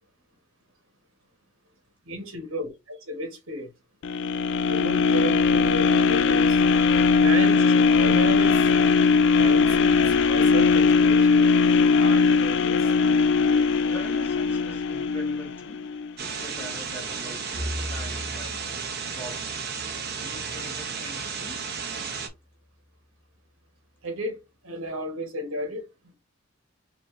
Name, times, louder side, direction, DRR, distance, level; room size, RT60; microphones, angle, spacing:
voice 1, 2.0-3.7 4.7-6.6 7.2-7.6 8.0-8.7 9.4-11.6 12.0-12.9 24.0-26.1, equal, 80° right, 1.3 m, -34 dB
sound 1, 4.0-16.1 16.6-16.7, left 4 dB, 60° left, 0.3 m, -20 dB
voice 2, 13.9-15.9 16.2-18.8 19.1-19.5 20.2-21.6, left 1 dB, 10° left, 1.5 m, -43 dB
sound 2, 16.2-22.3, right 6 dB, 50° right, 0.8 m, -33 dB
Bowed string instrument, 17.5-21.9, left 1 dB, 35° left, 0.8 m, -39 dB
4.1 x 2.6 x 3.1 m
head